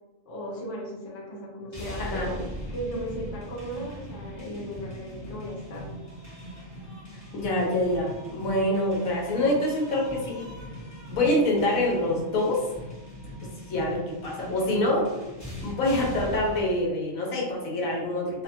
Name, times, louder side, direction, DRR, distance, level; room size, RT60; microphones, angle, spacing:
voice 1, 0.3-5.9, equal, 65° left, -4 dB, 1.0 m, -36 dB
sound 1, 1.7-16.7, equal, 20° left, 0.6 m, -40 dB
voice 2, 2.0-2.3 7.1-10.5 11.1-12.7 13.7-15.1 15.6-18.4, left 1 dB, 90° left, -3 dB, 1.2 m, -26 dB
2.8 x 2.1 x 2.6 m, 1.0 s
omnidirectional pair, 1.4 m